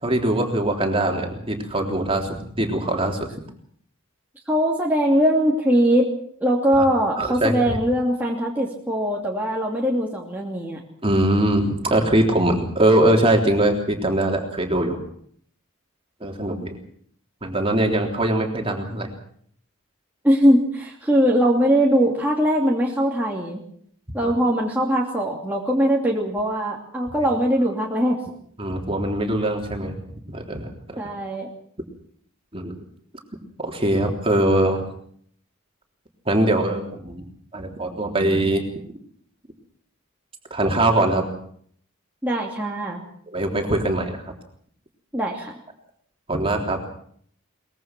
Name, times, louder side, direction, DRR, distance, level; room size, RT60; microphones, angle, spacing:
voice 1, 0.0-3.3 6.8-6.9 7.2-7.8 11.0-15.0 16.2-16.7 17.4-19.1 24.2-24.3 28.6-29.9 30.3-31.0 32.5-32.8 33.6-34.8 36.2-37.2 37.5-38.6 40.5-41.2 43.3-44.2 46.3-46.8, right 1 dB, 25° right, 2 dB, 3.5 m, -22 dB
voice 2, 4.5-6.1 6.4-10.8 20.2-23.6 24.1-28.2 31.0-31.5 42.2-43.0 45.1-45.5, equal, 10° right, -3 dB, 2.7 m, -21 dB
23.0 x 21.5 x 6.1 m, 0.62 s
head